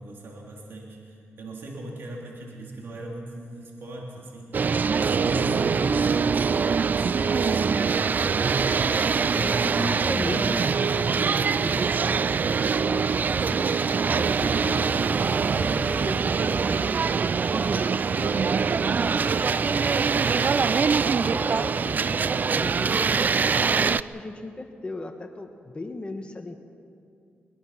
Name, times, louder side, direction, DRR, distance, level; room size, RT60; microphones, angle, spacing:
voice 1, 0.0-8.7, right 1 dB, 60° right, -1 dB, 3.0 m, -39 dB
sound 1, 4.5-24.0, right 5 dB, 45° right, 0.4 m, -23 dB
voice 2, 8.9-13.2 13.4-13.8 14.1-17.1 17.5-23.1 23.5-26.6, left 2 dB, 25° left, 6 dB, 1.4 m, -38 dB
23.0 x 21.0 x 5.8 m, 2.4 s
cardioid pair, 85°, 4 cm